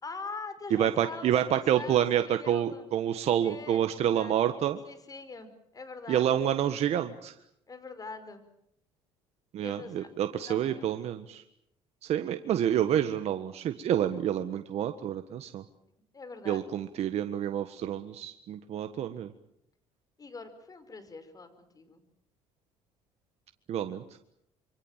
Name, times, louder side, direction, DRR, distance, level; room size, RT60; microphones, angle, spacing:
voice 1, 0.0-2.8 3.4-4.3 4.8-6.4 7.7-8.4 9.6-10.1 10.4-10.9 16.1-16.6 20.2-22.0, left 4 dB, 30° left, 11 dB, 5.2 m, -43 dB
voice 2, 0.8-4.8 6.1-7.3 9.5-11.4 12.0-15.6 16.5-19.3 23.7-24.0, right 10 dB, 60° right, 9 dB, 1.5 m, -28 dB
26.5 x 24.0 x 7.5 m, 0.75 s
supercardioid pair, 80°, 12 cm